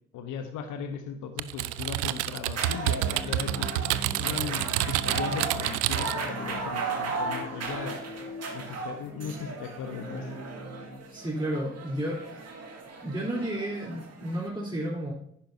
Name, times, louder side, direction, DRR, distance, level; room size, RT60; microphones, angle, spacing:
voice 1, 0.1-8.0 8.5-10.3, left 6 dB, 60° left, 8 dB, 1.1 m, -37 dB
Typing, 1.4-6.3, right 16 dB, 75° right, 0.5 m, -29 dB
sound 1, 2.5-14.5, right 3 dB, 50° right, 2.1 m, -36 dB
sound 2, 3.0-11.0, left 1 dB, 25° left, 3.5 m, -42 dB
voice 2, 11.1-12.4 13.0-15.1, right 1 dB, 15° right, -6 dB, 3.5 m, -32 dB
10.5 x 9.8 x 2.8 m, 0.71 s
hypercardioid pair, 45°, 33 cm